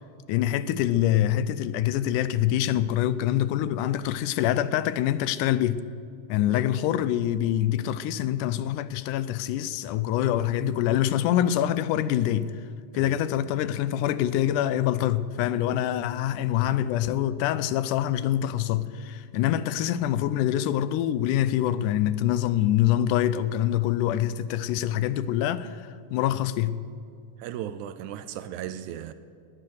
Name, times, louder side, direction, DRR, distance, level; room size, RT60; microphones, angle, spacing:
voice 1, 0.3-5.8 6.3-12.6 12.9-26.8, left 12 dB, 85° left, 2.1 m, -25 dB
voice 2, 27.4-29.1, right 11 dB, 80° right, 1.9 m, -36 dB
19.0 x 9.8 x 6.4 m
omnidirectional pair, 3.7 m